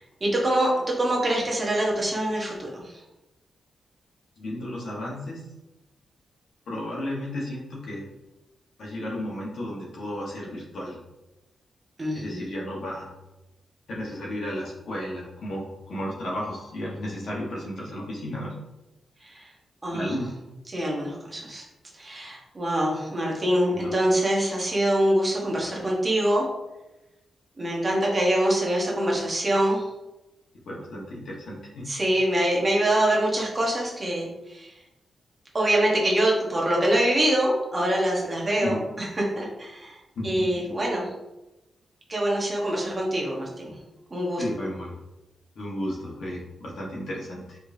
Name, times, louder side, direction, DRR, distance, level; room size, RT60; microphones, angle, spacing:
voice 1, 0.2-3.0 12.0-12.4 19.2-19.5 19.8-20.1 20.7-21.6 22.0-26.4 27.6-29.8 31.9-34.7 35.5-39.1 39.4-40.0 40.2-41.1 42.1-43.7 44.1-44.4, right 1 dB, 25° right, -3 dB, 1.1 m, -24 dB
voice 2, 4.4-5.4 6.7-8.1 8.8-11.0 12.1-13.1 13.9-18.5 19.9-20.3 23.7-23.9 30.7-31.9 38.6-38.8 40.1-40.5 44.4-45.0 45.5-47.6, left 1 dB, 70° left, -4 dB, 1.3 m, -33 dB
4.7 x 3.4 x 2.7 m, 0.99 s
wide cardioid pair, 115°, 0 cm